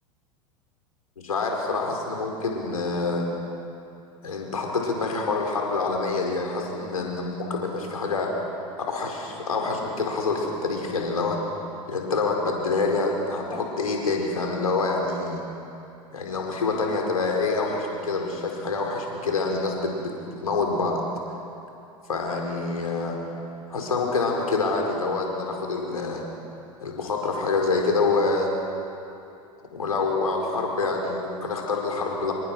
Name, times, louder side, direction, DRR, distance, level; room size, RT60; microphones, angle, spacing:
voice 1, 1.2-3.2 4.2-8.3 8.9-11.4 11.9-15.4 16.1-21.0 22.1-23.2 23.7-26.2 26.8-28.5 29.7-32.3, left 3 dB, 80° left, 1 dB, 4.8 m, -26 dB
27.5 x 24.5 x 6.2 m, 2.7 s
figure-of-eight pair, 85°, 18 cm